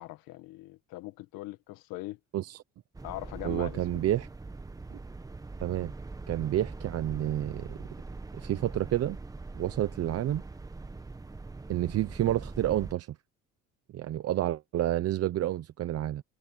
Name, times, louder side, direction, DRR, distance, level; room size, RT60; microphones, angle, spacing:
voice 1, 0.0-2.2 3.0-4.0, left 18 dB, 80° left, 1.6 m, -41 dB
sound 1, 2.9-12.9, right 3 dB, 10° right, 1.0 m, -42 dB
voice 2, 3.4-4.3 4.9-5.0 5.6-5.9 6.3-7.8 8.4-9.2 9.5-10.4 11.7-13.1 13.9-16.2, right 13 dB, 45° right, 0.8 m, -29 dB
cardioid pair, 150°, 34 cm